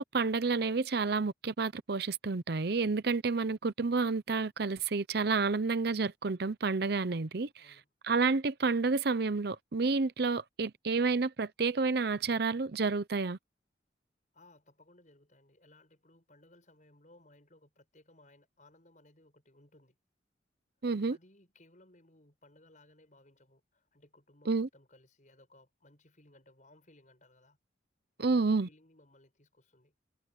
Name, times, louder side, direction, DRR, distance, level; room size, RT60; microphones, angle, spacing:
voice 1, 0.0-7.5 8.0-13.4 20.8-21.2 24.5-24.7 28.2-28.7, right 4 dB, 55° right, 0.7 m, -30 dB
voice 2, 7.6-7.9 14.3-20.0 21.1-27.6 28.2-29.9, left 1 dB, 40° left, 7.0 m, -62 dB
head